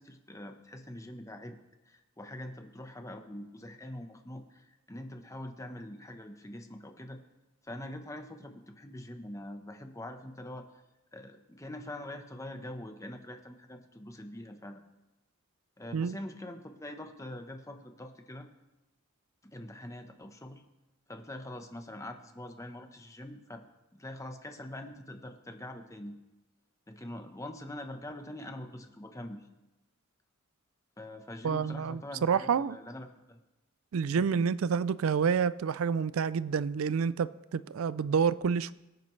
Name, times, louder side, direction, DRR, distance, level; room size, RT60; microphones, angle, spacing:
voice 1, 0.0-1.6 1.9-7.2 7.6-10.7 11.1-14.8 15.8-18.5 19.4-20.6 21.1-23.6 23.9-26.1 26.9-29.4 31.0-33.4 34.1-34.3, left 1 dB, 15° left, 1.0 m, -44 dB
voice 2, 31.4-32.8 33.9-38.7, right 6 dB, 85° right, 0.4 m, -28 dB
23.5 x 9.2 x 3.2 m
head